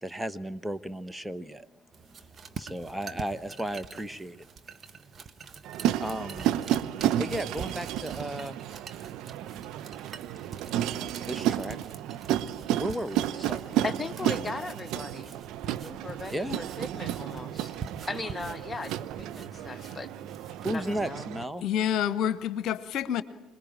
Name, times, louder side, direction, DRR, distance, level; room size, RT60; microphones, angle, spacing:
voice 1, 0.0-1.8 2.1-2.2 2.6-4.5 6.0-6.5 7.2-8.6 10.7-11.8 12.8-13.8 14.2-14.5 16.3-16.6 20.6-21.6, right 1 dB, 5° right, 1.1 m, -35 dB
sound 1, 1.9-21.1, right 5 dB, 40° right, 1.5 m, -46 dB
sound 2, 5.6-21.5, right 12 dB, 60° right, 0.9 m, -32 dB
voice 2, 13.8-15.3 15.7-17.7 18.1-20.1 20.7-21.3, left 3 dB, 25° left, 1.0 m, -38 dB
voice 3, 21.6-23.2, left 9 dB, 60° left, 1.0 m, -28 dB
26.0 x 21.0 x 8.8 m
figure-of-eight pair, 55°, 0 cm